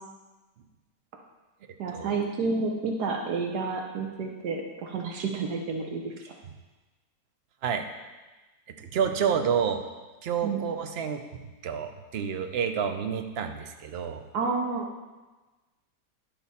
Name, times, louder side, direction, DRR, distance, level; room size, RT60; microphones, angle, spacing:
voice 1, 1.8-6.3 10.4-10.6 14.3-14.9, right 4 dB, 75° right, 2 dB, 1.4 m, -30 dB
voice 2, 8.8-9.8 10.2-14.2, right 7 dB, 60° right, 6 dB, 0.6 m, -29 dB
10.5 x 5.8 x 4.2 m, 1.2 s
omnidirectional pair, 1.8 m